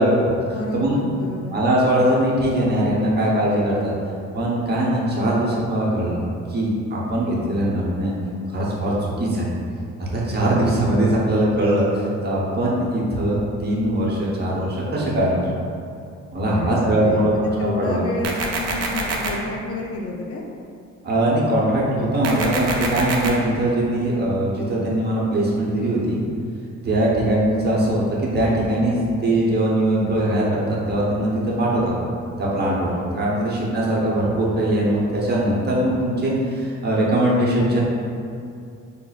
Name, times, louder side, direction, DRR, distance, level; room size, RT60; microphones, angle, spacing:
voice 1, 0.0-0.3 0.7-1.0 1.5-3.9 4.3-6.2 6.5-8.1 8.5-9.5 10.1-15.5 16.3-18.0 21.0-26.2 26.8-31.9 32.4-37.8, right 1 dB, 35° right, -5 dB, 0.8 m, -21 dB
voice 2, 0.5-1.5 16.5-20.5, left 2 dB, 50° left, -1 dB, 0.5 m, -30 dB
sound 1, 18.2-19.3 22.2-23.3, right 3 dB, 55° right, 0.5 m, -25 dB
5.5 x 2.0 x 2.4 m, 2.4 s
cardioid pair, 90°, 30 cm